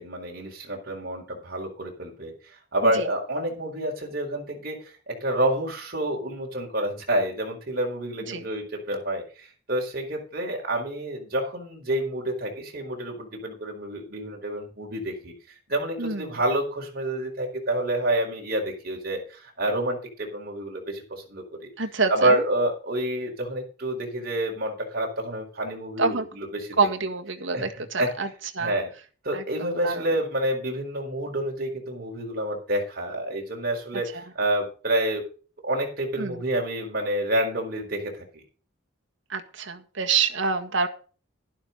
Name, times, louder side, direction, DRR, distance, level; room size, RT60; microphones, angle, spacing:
voice 1, 0.0-2.3 2.7-15.3 15.7-21.7 22.1-26.8 27.5-27.7 28.0-28.1 28.6-28.9 29.2-35.2 35.6-38.4, right 1 dB, 45° right, 0 dB, 4.7 m, -28 dB
voice 2, 16.0-16.4 21.8-22.4 26.0-26.2 26.8-28.3 28.5-28.8 29.3-30.0 36.2-36.4 39.3-40.9, right 4 dB, 65° right, 5 dB, 1.7 m, -27 dB
11.5 x 11.5 x 4.0 m, 0.37 s
head